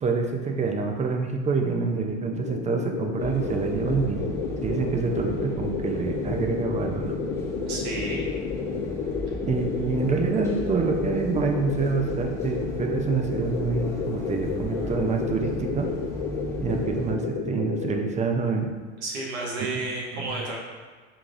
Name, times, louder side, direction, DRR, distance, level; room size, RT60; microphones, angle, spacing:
voice 1, 0.0-4.2 4.6-7.1 9.5-15.9 16.6-18.7 20.1-20.3, right 5 dB, 20° right, 3 dB, 0.6 m, -27 dB
sound 1, 2.3-18.2, left 6 dB, 65° left, 0.7 m, -31 dB
sound 2, 3.2-17.1, equal, 10° left, 1.1 m, -36 dB
voice 2, 7.7-8.2 19.0-20.6, right 2 dB, 80° right, -3 dB, 1.1 m, -31 dB
5.8 x 3.3 x 2.5 m, 1.4 s
hypercardioid pair, 85°, 33 cm